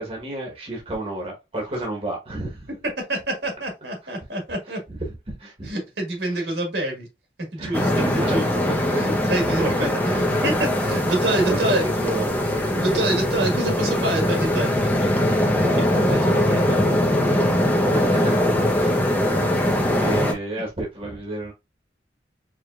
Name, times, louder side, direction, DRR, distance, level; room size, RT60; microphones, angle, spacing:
voice 1, 0.0-2.6 5.3-5.7 7.6-7.8 8.2-9.0 9.5-10.2 11.3-12.4 17.6-18.4 18.7-19.0 19.4-21.5, right 2 dB, 30° right, 1.1 m, -31 dB
voice 2, 3.0-4.8 5.6-7.1 7.5-12.1 12.7-15.1 15.7-17.1, right 1 dB, 70° right, 1.6 m, -27 dB
sound 1, 7.7-20.3, left 1 dB, 10° left, 0.7 m, -21 dB
4.7 x 3.1 x 2.4 m
head